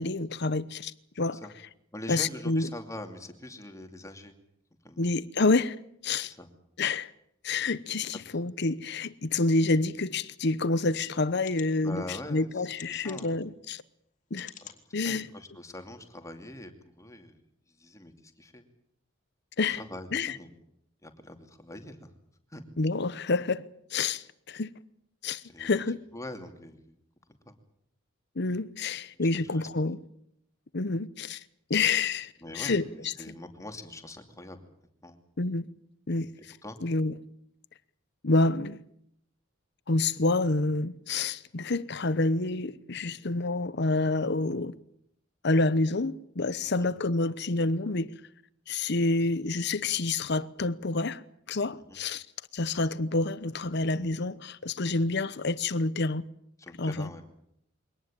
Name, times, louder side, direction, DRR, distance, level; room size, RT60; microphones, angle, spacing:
voice 1, 0.0-1.4 2.1-2.7 5.0-5.8 6.0-6.3 6.8-7.1 7.4-13.8 14.3-14.5 14.9-15.3 19.6-19.8 20.1-20.4 22.8-23.6 23.9-24.7 25.2-26.0 28.4-30.0 30.7-31.4 31.7-33.1 35.4-35.7 36.1-36.3 36.8-37.1 38.2-38.8 39.9-44.8 45.4-48.1 48.7-51.2 51.5-52.2 52.5-56.2 56.8-57.1, left 3 dB, 55° left, 0.9 m, -28 dB
voice 2, 1.9-4.3 4.8-5.1 6.2-6.5 11.7-13.5 14.9-16.7 17.0-17.4 17.8-18.1 18.4-18.6 19.7-20.5 21.0-22.1 22.5-22.6 25.5-25.8 26.1-26.9 27.4-27.6 29.1-29.3 29.5-29.7 32.4-32.8 33.2-34.6 35.0-35.2 36.6-36.8 46.6-46.9 51.7-52.0 54.8-55.0 56.6-57.2, left 1 dB, 15° left, 2.7 m, -43 dB
sound 1, 11.4-11.7 12.7-13.4 14.3-14.8 15.4-15.5 15.8-15.9, left 9 dB, 40° left, 2.7 m, -47 dB
23.5 x 18.5 x 8.9 m
head